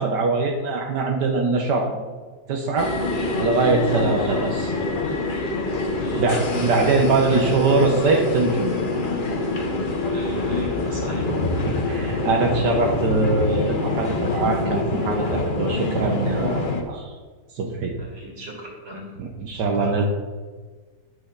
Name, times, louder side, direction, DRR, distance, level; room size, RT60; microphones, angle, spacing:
voice 1, 0.0-2.0 2.5-2.9 3.4-4.7 6.2-8.7 11.7-17.1 17.5-17.9 19.2-20.1, right 3 dB, 75° right, 1 dB, 1.5 m, -22 dB
sound 1, 2.8-16.8, left 2 dB, 40° left, 0.8 m, -25 dB
voice 2, 10.1-11.4 18.0-19.2 19.5-20.1, right 1 dB, 35° right, -2 dB, 2.4 m, -38 dB
11.0 x 6.3 x 3.9 m, 1.4 s
omnidirectional pair, 1.9 m